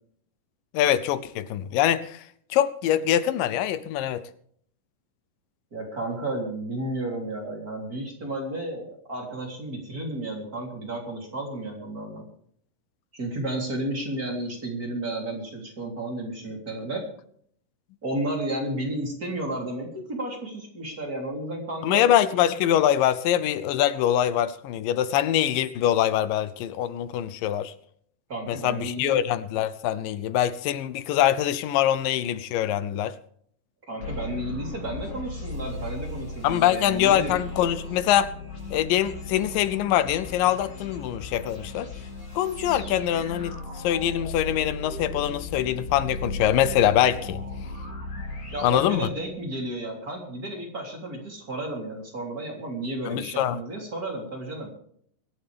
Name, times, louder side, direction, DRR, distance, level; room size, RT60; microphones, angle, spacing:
voice 1, 0.7-2.2 2.5-4.2 21.8-27.7 28.5-33.1 36.4-38.3 38.7-41.9 42.4-47.4 48.6-49.1 53.1-53.6, left 11 dB, 85° left, 2.5 m, -24 dB
voice 2, 5.7-12.2 13.1-17.0 18.0-22.1 28.3-29.2 33.9-37.3 48.5-54.7, right 1 dB, 25° right, 3.7 m, -32 dB
sound 1, 34.0-49.6, left 2 dB, 65° left, 9.5 m, -36 dB
23.0 x 12.0 x 3.5 m
omnidirectional pair, 3.9 m